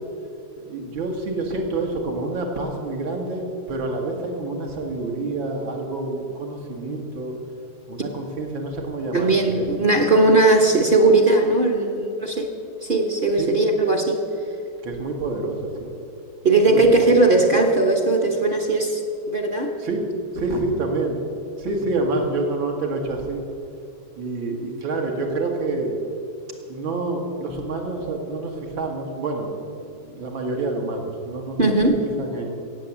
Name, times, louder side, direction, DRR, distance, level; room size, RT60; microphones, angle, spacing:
voice 1, 0.6-7.3 7.9-9.7 13.4-13.5 14.8-15.9 16.7-16.8 19.8-20.1 20.3-21.2 21.6-23.4 24.2-26.0 26.7-29.5 29.8-31.7 32.0-32.5, right 2 dB, 70° right, 1 dB, 2.6 m, -27 dB
voice 2, 9.1-12.5 12.8-14.2 16.4-19.0 19.3-19.7 31.6-32.0, right 2 dB, 35° right, 3 dB, 1.0 m, -18 dB
17.0 x 7.9 x 7.4 m, 2.5 s
omnidirectional pair, 2.2 m